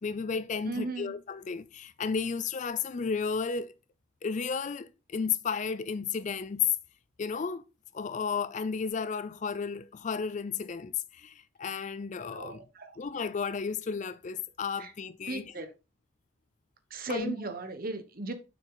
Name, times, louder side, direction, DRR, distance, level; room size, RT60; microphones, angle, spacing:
voice 1, 0.0-3.7 4.2-6.7 7.2-7.6 7.9-12.6 13.0-15.5 17.1-17.4, left 5 dB, 40° left, 0.4 m, -33 dB
voice 2, 0.7-1.2 12.3-12.9 14.8-14.9 15.3-15.7 16.9-18.3, right 3 dB, 45° right, 1.2 m, -36 dB
6.6 x 6.2 x 3.8 m
head